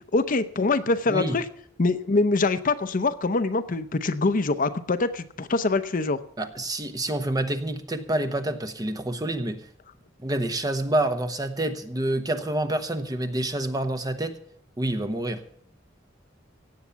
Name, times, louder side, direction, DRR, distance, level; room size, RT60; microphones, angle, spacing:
voice 1, 0.1-1.4 1.8-6.2, left 3 dB, 45° left, 11 dB, 0.7 m, -24 dB
voice 2, 6.4-9.6 10.2-14.4 14.8-15.4, right 1 dB, 20° right, 8 dB, 1.0 m, -27 dB
17.0 x 7.3 x 6.9 m, 0.63 s
head